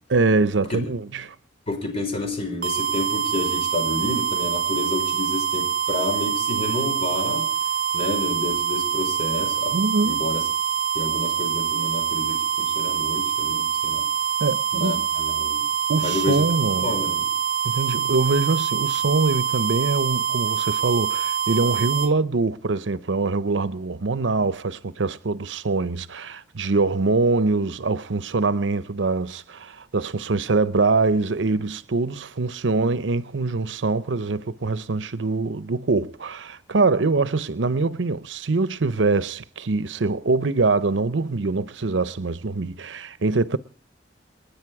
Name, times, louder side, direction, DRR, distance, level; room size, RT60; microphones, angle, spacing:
voice 1, 0.1-1.3 9.7-10.2 14.4-15.0 15.9-16.9 17.6-43.6, right 3 dB, 90° right, 0.7 m, -23 dB
voice 2, 1.7-7.5 7.9-9.8 10.0-10.4 10.9-14.0 14.7-15.7 16.0-16.4 16.8-17.3, left 2 dB, 35° left, 5.0 m, -29 dB
sound 1, 2.6-22.1, right 8 dB, 50° right, 0.9 m, -25 dB
28.0 x 10.5 x 4.7 m
head